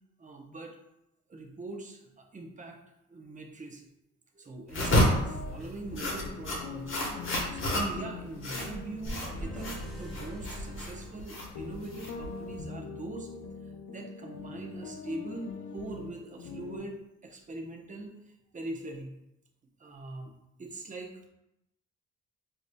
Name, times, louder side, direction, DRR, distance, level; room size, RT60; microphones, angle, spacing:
voice 1, 0.2-0.8 1.3-2.8 3.1-3.9 4.3-13.3 13.9-18.1 18.5-19.1 19.8-20.3 20.6-21.3, right 2 dB, 25° right, 1 dB, 0.7 m, -42 dB
sound 1, 4.7-12.6, left 1 dB, 45° left, 1.0 m, -31 dB
sound 2, 5.2-16.8, left 5 dB, 80° left, 0.6 m, -43 dB
sound 3, 9.1-11.9, equal, ahead, 0.9 m, -41 dB
4.6 x 2.7 x 2.2 m, 0.86 s
cardioid pair, 90°, 30 cm